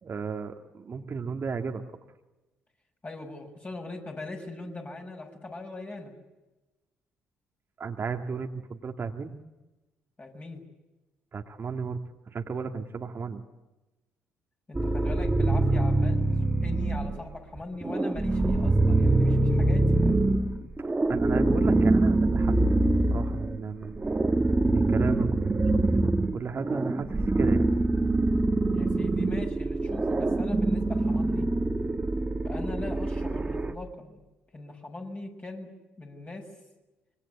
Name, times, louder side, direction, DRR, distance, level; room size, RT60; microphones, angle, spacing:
voice 1, 0.0-1.8 7.8-9.3 11.3-12.0 12.3-13.4 21.1-25.7 26.0-27.7, right 5 dB, 40° right, 4 dB, 1.9 m, -34 dB
voice 2, 3.0-6.1 10.2-10.6 14.7-20.0 28.7-31.5 32.4-34.2 34.5-35.7 36.0-36.5, left 2 dB, 25° left, 2 dB, 7.1 m, -40 dB
sound 1, 14.7-17.2 17.6-33.7, right 2 dB, 20° right, 2.0 m, -24 dB
26.0 x 24.0 x 8.2 m, 1.1 s
hypercardioid pair, 45°, 6 cm